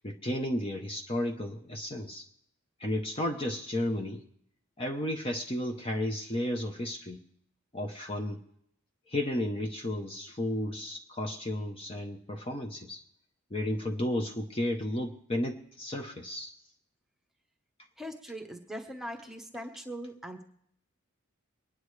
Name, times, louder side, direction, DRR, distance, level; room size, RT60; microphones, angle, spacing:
voice 1, 0.0-2.3 2.8-4.2 4.8-7.2 7.7-8.4 9.1-13.0 13.5-16.5, left 1 dB, 25° left, 3 dB, 0.8 m, -33 dB
voice 2, 18.0-20.4, equal, ahead, 2 dB, 1.0 m, -41 dB
24.0 x 10.0 x 3.2 m, 0.72 s
head